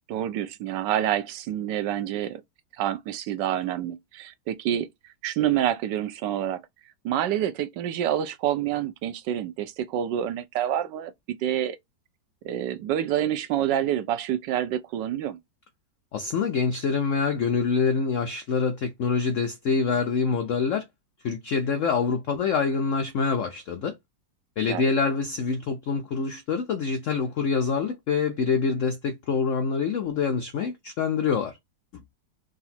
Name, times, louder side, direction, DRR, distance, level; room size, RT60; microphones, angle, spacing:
voice 1, 0.1-2.4 2.8-4.9 5.2-6.6 7.0-11.1 11.4-11.8 12.4-15.4 24.6-24.8, right 11 dB, 75° right, 1.2 m, -27 dB
voice 2, 16.1-20.9 21.2-24.0 24.6-31.6 31.9-32.0, left 5 dB, 80° left, 0.7 m, -26 dB
3.9 x 2.4 x 4.1 m
omnidirectional pair, 2.0 m